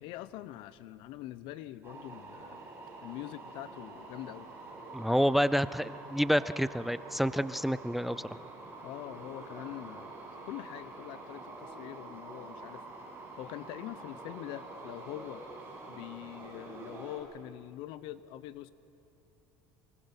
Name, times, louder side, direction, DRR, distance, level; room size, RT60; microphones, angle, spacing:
voice 1, 0.0-2.6 3.0-4.5 5.1-5.3 8.8-10.1 10.5-12.8 13.4-15.4 15.9-18.7, left 14 dB, 70° left, 16 dB, 0.8 m, -44 dB
sound 1, 1.8-17.2, right 2 dB, 25° right, 5.8 m, -47 dB
voice 2, 4.9-8.2, equal, ahead, 17 dB, 0.5 m, -28 dB
24.0 x 19.5 x 6.1 m, 2.8 s
supercardioid pair, 95°, 9 cm